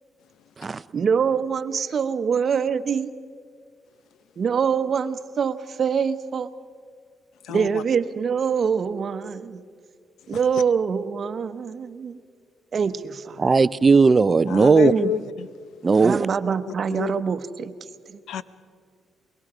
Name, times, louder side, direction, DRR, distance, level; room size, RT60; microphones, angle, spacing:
voice 1, 0.9-3.1 4.4-6.5 7.5-9.6 10.3-12.2 12.7-13.4 14.9-15.1 16.0-17.7 18.1-18.2, right 6 dB, 50° right, 0.9 m, -24 dB
voice 2, 7.5-7.8 14.5-15.5 16.9-17.1 18.3-18.4, left 10 dB, 80° left, 0.7 m, -28 dB
voice 3, 13.4-14.9 15.8-16.3, right 4 dB, 30° right, 0.4 m, -17 dB
24.0 x 22.0 x 5.0 m
cardioid pair, 90°, 0 cm